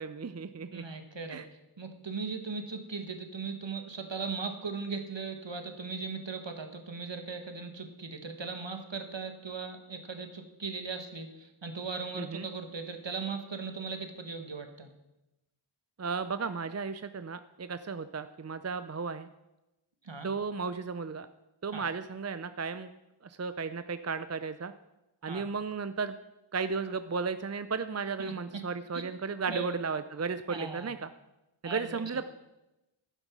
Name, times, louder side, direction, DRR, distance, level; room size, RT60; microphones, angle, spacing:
voice 1, 0.0-0.8 1.3-1.4 12.1-12.5 16.0-19.3 20.2-21.3 21.6-22.9 23.2-24.7 25.2-26.2 26.5-31.1 31.6-32.3, right 5 dB, 35° right, 12 dB, 0.5 m, -34 dB
voice 2, 0.7-1.4 1.8-14.9 20.0-20.3 21.7-21.8 25.3-25.4 28.2-28.6 28.9-29.0 29.5-29.8 30.5-30.9 31.6-32.0, right 4 dB, 60° right, 6 dB, 1.6 m, -38 dB
11.5 x 9.0 x 6.1 m, 0.97 s
wide cardioid pair, 40°, 49 cm